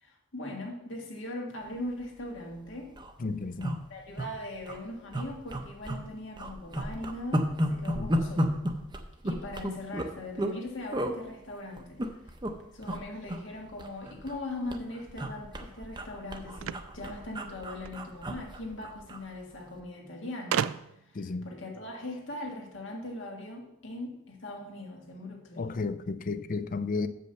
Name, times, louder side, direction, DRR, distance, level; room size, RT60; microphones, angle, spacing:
voice 1, 0.0-2.9 3.9-8.5 9.2-12.1 12.7-20.7 21.1-25.9, left 1 dB, 70° left, 1.7 m, -40 dB
sound 1, 2.1-2.3 2.6-2.7 2.9-3.1 3.6-4.3 4.6-4.8 5.1-6.1 6.4-10.6 10.9-11.2 11.8-12.5 12.8-13.0 13.3-14.4 14.7-19.3 19.6-19.8, equal, 20° right, 0.7 m, -32 dB
voice 2, 3.2-3.9 7.9-8.1 21.1-21.5 25.6-27.1, left 3 dB, 45° left, 0.4 m, -33 dB
sound 2, 16.6-18.0 19.1-19.2 19.4-19.5 20.5-21.2, right 9 dB, 85° right, 0.3 m, -33 dB
6.8 x 5.4 x 6.7 m
head